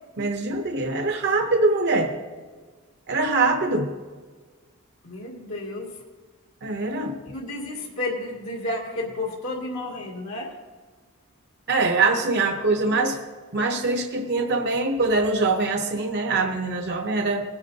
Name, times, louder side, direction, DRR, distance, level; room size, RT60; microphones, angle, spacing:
voice 1, 0.2-2.1 3.1-3.9 6.6-7.2 11.7-13.2 13.5-17.4, right 3 dB, 50° right, 4 dB, 0.7 m, -23 dB
voice 2, 5.0-5.9 7.3-10.5, left 2 dB, 75° left, -3 dB, 2.3 m, -31 dB
19.5 x 10.5 x 2.8 m, 1.4 s
head